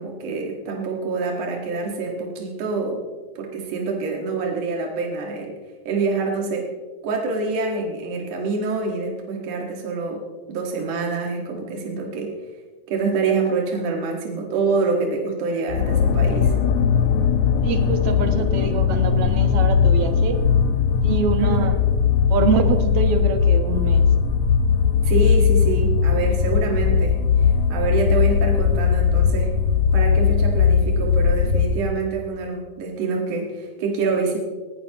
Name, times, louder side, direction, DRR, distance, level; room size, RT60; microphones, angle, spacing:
voice 1, 0.0-3.0 3.4-5.6 5.9-6.7 7.0-10.2 10.5-12.3 12.9-16.5 21.4-21.7 25.0-29.5 29.9-34.4, right 4 dB, 75° right, 0 dB, 3.2 m, -26 dB
sound 1, 15.7-32.0, left 7 dB, 75° left, 1.5 m, -19 dB
voice 2, 17.6-20.4 21.0-21.8 22.3-24.1, right 5 dB, 55° right, 6 dB, 2.1 m, -24 dB
19.5 x 17.5 x 3.0 m, 1.4 s
omnidirectional pair, 3.6 m